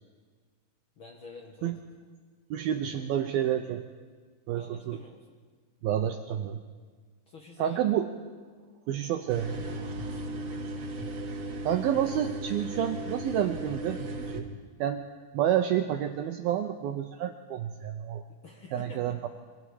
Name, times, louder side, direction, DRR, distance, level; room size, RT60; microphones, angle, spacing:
voice 1, 1.0-1.8 4.5-5.3 7.3-7.8 9.8-10.0 18.3-19.2, left 4 dB, 75° left, 1 dB, 1.2 m, -48 dB
voice 2, 2.5-3.8 4.5-5.0 5.8-6.6 7.6-8.1 8.9-9.5 11.6-14.4 14.8-15.0 15.3-18.2 18.7-19.3, right 10 dB, 80° right, 6 dB, 2.2 m, -29 dB
sound 1, 9.3-14.4, right 1 dB, 50° right, 2.2 m, -36 dB
27.5 x 24.0 x 4.9 m, 1.5 s
omnidirectional pair, 5.1 m